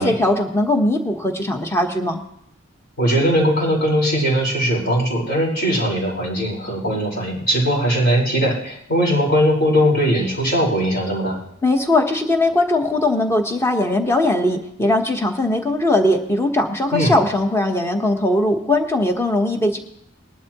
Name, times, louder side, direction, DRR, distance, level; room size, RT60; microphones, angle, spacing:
voice 1, 0.0-2.2 11.6-19.8, left 1 dB, 15° left, 4 dB, 1.2 m, -19 dB
voice 2, 3.0-11.4 16.9-17.1, equal, 55° left, -3 dB, 4.8 m, -19 dB
20.0 x 12.0 x 3.0 m, 0.71 s
head